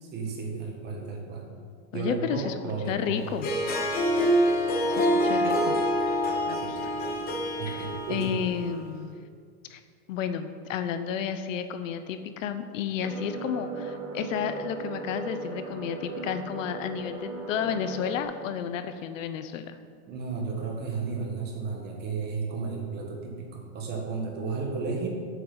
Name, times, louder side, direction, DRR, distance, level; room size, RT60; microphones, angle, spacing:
voice 1, 0.1-1.5 1.9-3.4 6.5-6.9 7.5-8.4 20.1-25.1, right 4 dB, 25° right, 1 dB, 1.5 m, -33 dB
voice 2, 1.9-2.5 2.9-3.5 4.3-4.5 4.9-5.8 6.5-6.6 7.7-9.1 9.7-9.8 10.1-19.8, left 8 dB, 60° left, 9 dB, 0.8 m, -32 dB
Harp, 3.3-8.7, equal, 20° left, 1.0 m, -26 dB
sound 1, 13.0-18.2, right 4 dB, 65° right, 2.5 m, -37 dB
14.0 x 8.1 x 4.0 m, 2.1 s
supercardioid pair, 165°, 43 cm